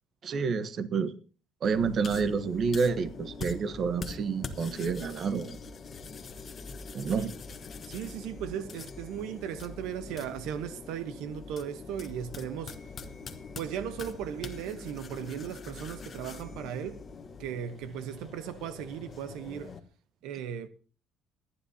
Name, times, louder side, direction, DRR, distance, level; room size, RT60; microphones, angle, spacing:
voice 1, 0.2-1.1 1.6-5.6 6.9-7.3, right 5 dB, 40° right, 1.0 m, -29 dB
sound 1, 1.6-19.8, left 4 dB, 30° left, 1.3 m, -43 dB
voice 2, 7.9-12.8 13.5-17.0 17.4-19.7 20.2-20.7, right 9 dB, 80° right, 1.0 m, -37 dB
27.0 x 9.9 x 2.8 m
cardioid pair, 145°, 0 cm